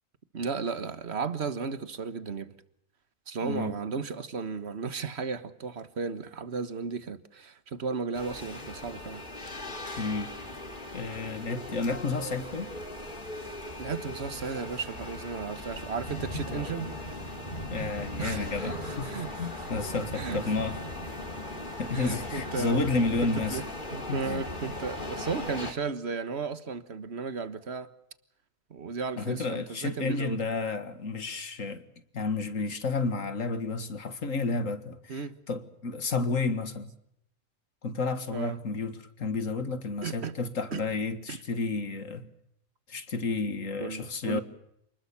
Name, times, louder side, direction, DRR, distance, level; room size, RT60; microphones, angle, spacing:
voice 1, 0.3-2.5 3.3-9.2 13.8-16.9 18.2-19.7 20.1-20.6 21.9-22.8 23.2-23.6 23.9-27.9 28.7-30.4 35.1-35.4 38.3-38.6 40.0-40.4 40.7-40.8 41.3-41.4 43.8-44.4, right 5 dB, 55° right, 1.7 m, -35 dB
voice 2, 3.4-3.7 10.0-10.4 10.9-12.7 17.7-19.1 19.4-20.8 21.8-23.6 24.1-24.4 29.2-31.9 32.1-36.9 37.8-42.3 42.9-44.4, left 3 dB, 75° left, 2.3 m, -31 dB
sound 1, 8.1-25.7, left 1 dB, 40° left, 3.2 m, -38 dB
29.0 x 20.5 x 7.1 m
omnidirectional pair, 1.4 m